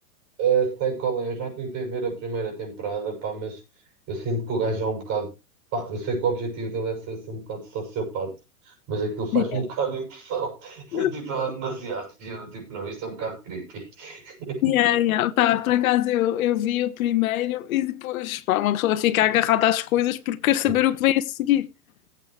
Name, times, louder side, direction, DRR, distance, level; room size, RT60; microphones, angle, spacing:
voice 1, 0.4-3.6 4.1-5.3 5.7-8.3 8.6-14.7 20.7-20.8, right 5 dB, 35° right, 7.4 m, -29 dB
voice 2, 14.6-21.7, left 13 dB, 60° left, 1.2 m, -22 dB
19.0 x 8.3 x 3.2 m
hypercardioid pair, 130°, 46 cm